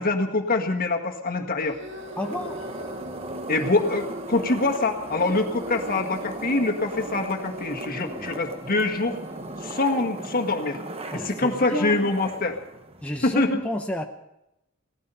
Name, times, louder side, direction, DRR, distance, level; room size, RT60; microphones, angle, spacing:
voice 1, 0.0-1.8 3.5-9.2 9.6-10.8 11.1-12.5 13.2-13.6, left 2 dB, 45° left, 3 dB, 1.7 m, -24 dB
sound 1, 1.6-9.8, equal, 60° right, 2.0 m, -42 dB
sound 2, 1.8-13.4, right 2 dB, 30° right, 1.0 m, -37 dB
voice 2, 2.2-2.7 8.0-8.3 11.1-12.1 13.0-14.0, left 1 dB, 5° left, 2 dB, 0.8 m, -31 dB
17.5 x 14.5 x 5.6 m, 0.86 s
head